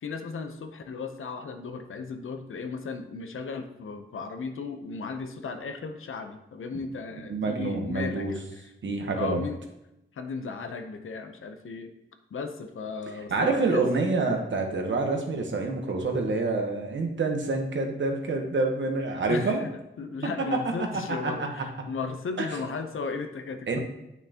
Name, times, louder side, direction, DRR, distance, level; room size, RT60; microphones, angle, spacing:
voice 1, 0.0-8.7 9.1-9.6 10.1-11.9 12.3-13.9 19.3-19.7 20.0-23.8, left 4 dB, 80° left, 7 dB, 0.8 m, -35 dB
voice 2, 7.3-8.3 8.8-9.4 13.3-19.6 21.2-21.5 23.7-23.8, right 3 dB, 65° right, 3 dB, 1.2 m, -27 dB
9.4 x 5.8 x 2.9 m, 0.90 s
wide cardioid pair, 125°, 21 cm